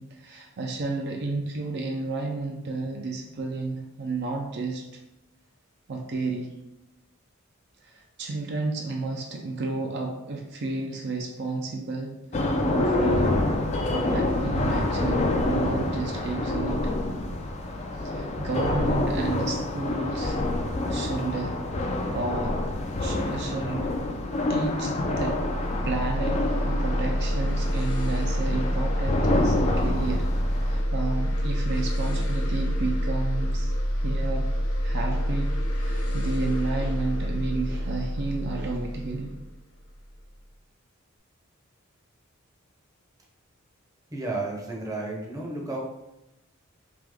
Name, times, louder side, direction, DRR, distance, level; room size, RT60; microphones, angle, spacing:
voice 1, 0.0-4.8 5.9-6.5 7.8-12.1 12.4-13.4 13.8-16.9 18.0-20.4 20.8-21.5 22.1-22.6 23.0-23.9 24.5-25.4 25.8-30.2 30.7-33.7 34.0-34.5 34.8-35.5 35.8-39.4, right 3 dB, 55° right, 2 dB, 0.4 m, -31 dB
sound 1, 12.3-30.8, left 2 dB, 30° left, 0.4 m, -27 dB
sound 2, 24.8-40.2, equal, 85° left, 0.7 m, -27 dB
voice 2, 44.1-45.8, right 2 dB, 15° right, -2 dB, 0.7 m, -32 dB
3.5 x 2.9 x 3.5 m, 0.94 s
head